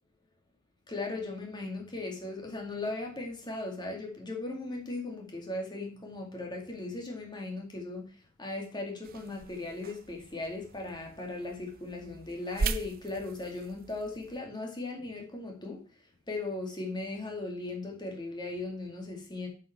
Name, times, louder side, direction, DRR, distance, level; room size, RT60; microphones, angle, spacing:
voice 1, 0.9-8.0 8.4-15.8 16.3-19.5, left 2 dB, 20° left, 1 dB, 2.4 m, -37 dB
sound 1, 9.0-14.4, right 4 dB, 45° right, 0.5 m, -39 dB
7.9 x 5.6 x 6.0 m, 0.38 s
head